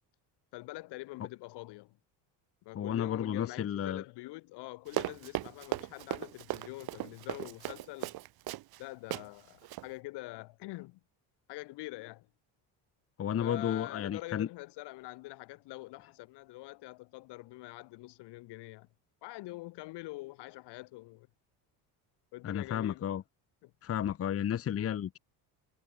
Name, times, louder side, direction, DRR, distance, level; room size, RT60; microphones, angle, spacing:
voice 1, 0.5-2.0 2.6-8.1 8.8-11.0 11.5-12.3 13.4-18.9 19.2-21.3 22.3-23.1 23.6-23.7, left 20 dB, 75° left, 3.8 m, -45 dB
voice 2, 2.7-4.0 13.2-14.5 22.4-23.2 23.8-25.2, left 10 dB, 35° left, 1.0 m, -32 dB
Run, 4.9-8.8 9.1-9.3 9.6-9.9, right 17 dB, 60° right, 1.2 m, -37 dB
cardioid pair, 120°, 41 cm